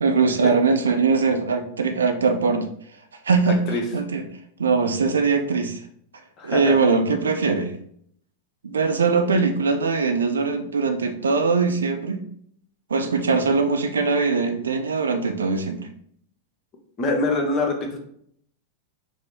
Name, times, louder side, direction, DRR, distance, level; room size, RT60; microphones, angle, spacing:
voice 1, 0.0-2.7 3.2-3.6 3.9-4.2 4.6-5.8 6.4-7.7 8.6-12.2 12.9-15.9, right 4 dB, 70° right, 6 dB, 0.5 m, -21 dB
voice 2, 6.4-6.8 17.0-18.0, left 2 dB, 30° left, 2 dB, 0.9 m, -24 dB
4.7 x 2.0 x 4.3 m, 0.66 s
figure-of-eight pair, 90°, 0 cm